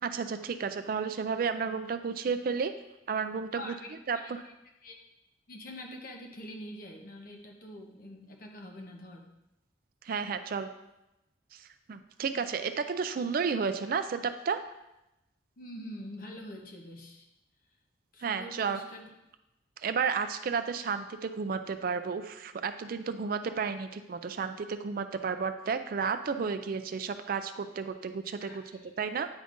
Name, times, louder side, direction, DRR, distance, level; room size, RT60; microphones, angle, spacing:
voice 1, 0.0-2.7 3.1-3.7 4.1-4.4 10.0-10.7 11.5-14.6 18.2-18.8 19.8-28.6 29.0-29.3, right 5 dB, 50° right, 10 dB, 0.3 m, -32 dB
voice 2, 3.5-4.5 4.8-5.0 5.5-9.3 15.6-17.3 18.1-19.1 28.4-29.0, left 1 dB, 50° left, 1 dB, 0.9 m, -45 dB
9.0 x 5.1 x 2.6 m, 0.92 s
head